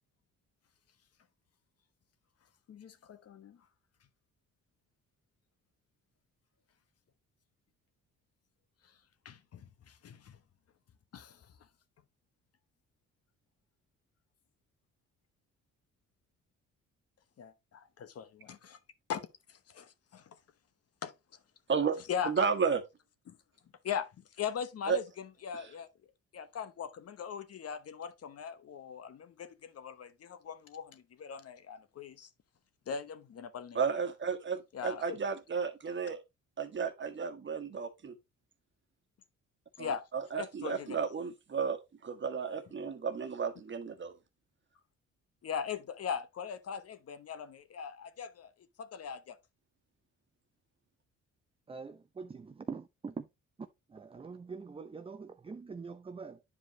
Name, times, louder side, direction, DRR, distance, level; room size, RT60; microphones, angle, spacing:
voice 1, 2.7-3.7 8.8-9.0 9.2-10.4 11.1-11.5 17.4-18.8 19.1-20.4 21.0-21.1 22.1-22.5 23.3-23.4 23.8-25.9 26.3-32.3 32.9-33.8 34.7-35.2 39.8-40.0 40.4-41.0 45.4-48.5 48.8-49.4, left 7 dB, 55° left, 1.0 m, -40 dB
voice 2, 22.2-22.8 24.9-25.0 25.5-25.6 33.7-36.2 36.6-38.1 39.8-44.1, right 6 dB, 40° right, 1.4 m, -33 dB
voice 3, 51.7-53.3 53.9-56.4, right 5 dB, 20° right, 0.5 m, -44 dB
9.6 x 5.0 x 2.9 m
cardioid pair, 90°, 30 cm